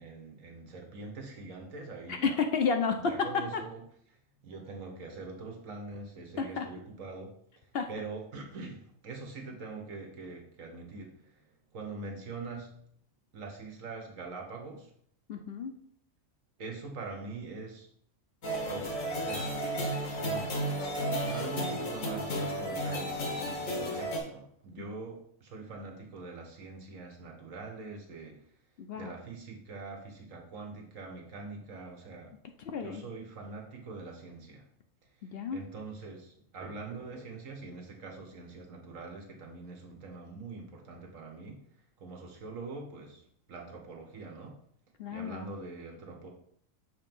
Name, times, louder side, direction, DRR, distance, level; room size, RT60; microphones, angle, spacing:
voice 1, 0.0-2.4 3.1-3.8 4.1-7.3 7.6-12.8 13.3-14.9 16.6-17.9 18.7-19.6 20.1-20.5 20.7-28.4 28.9-32.3 32.8-34.6 35.5-41.6 42.0-43.2 43.5-44.5 45.1-46.3, right 3 dB, 80° right, 1 dB, 1.6 m, -43 dB
voice 2, 2.1-3.1 3.5-3.6 6.4-6.6 7.7-7.9 15.3-15.7 28.8-29.1 32.7-33.0 35.2-35.6 45.0-45.5, left 5 dB, 60° left, 5 dB, 0.7 m, -31 dB
sound 1, 18.4-24.2, equal, 80° left, 1.6 m, -33 dB
6.9 x 3.0 x 5.3 m, 0.66 s
omnidirectional pair, 1.4 m